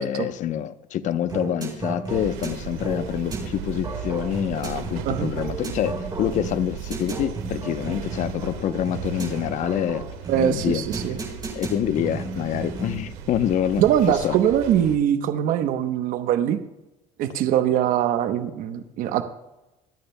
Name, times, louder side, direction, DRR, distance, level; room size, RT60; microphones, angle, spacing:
voice 1, 0.0-10.1 10.4-10.8 11.5-13.8 14.2-14.4, left 10 dB, 55° left, 0.8 m, -26 dB
sound 1, 1.3-13.1, right 3 dB, 25° right, 4.2 m, -34 dB
sound 2, 2.1-15.0, right 7 dB, 85° right, 1.8 m, -36 dB
voice 2, 10.3-11.2 13.8-16.6 17.2-19.2, right 10 dB, 65° right, 0.9 m, -22 dB
25.5 x 8.7 x 2.2 m
supercardioid pair, 100°, 15 cm